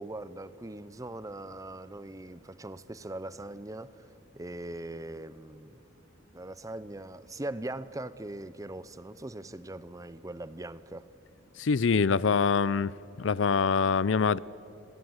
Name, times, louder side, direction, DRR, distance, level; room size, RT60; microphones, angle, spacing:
voice 1, 0.0-4.1 4.3-5.9 6.3-11.1, right 1 dB, 15° right, 0.7 m, -41 dB
voice 2, 11.6-12.9 13.2-14.4, left 5 dB, 70° left, 0.5 m, -24 dB
30.0 x 22.0 x 8.0 m
head